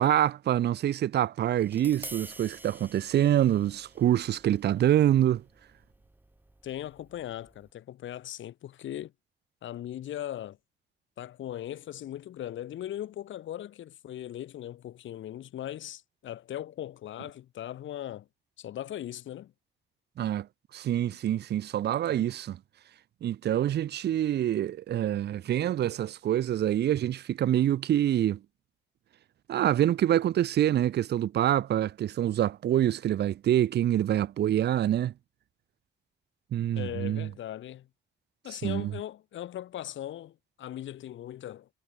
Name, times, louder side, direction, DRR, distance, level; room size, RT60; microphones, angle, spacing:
voice 1, 0.0-5.4 20.2-20.5 20.7-22.6 23.2-28.4 29.5-35.1 36.5-37.3 38.6-38.9, right 11 dB, 55° right, 0.6 m, -26 dB
Tap, 1.6-7.7, right 1 dB, 10° right, 3.6 m, -49 dB
voice 2, 6.6-9.1 9.6-10.6 11.2-18.3 18.6-19.5 36.7-37.9 38.4-41.7, left 12 dB, 75° left, 3.0 m, -39 dB
cardioid pair, 90°, 20 cm